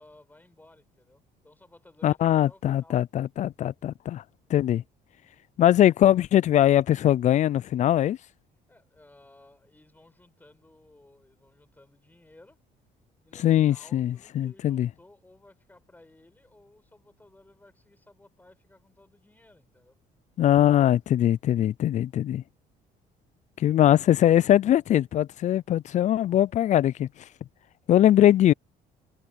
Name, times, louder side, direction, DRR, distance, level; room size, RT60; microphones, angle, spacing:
voice 1, 0.0-3.0 8.7-12.6 13.2-20.0, left 2 dB, 10° left, 7.8 m, -57 dB
voice 2, 2.0-4.2 4.5-4.8 5.6-8.2 13.4-14.9 20.4-22.4 23.6-27.1 27.9-28.5, left 12 dB, 45° left, 0.4 m, -21 dB
cardioid pair, 110°, 17 cm